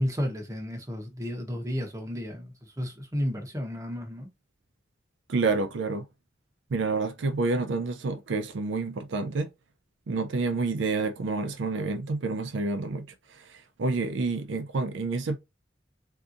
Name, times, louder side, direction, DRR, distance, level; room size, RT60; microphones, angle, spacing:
voice 1, 0.0-4.3, equal, 15° right, 0.8 m, -32 dB
voice 2, 5.3-6.1 6.7-9.5 10.1-15.4, right 3 dB, 75° right, 0.5 m, -29 dB
3.6 x 2.7 x 2.5 m
head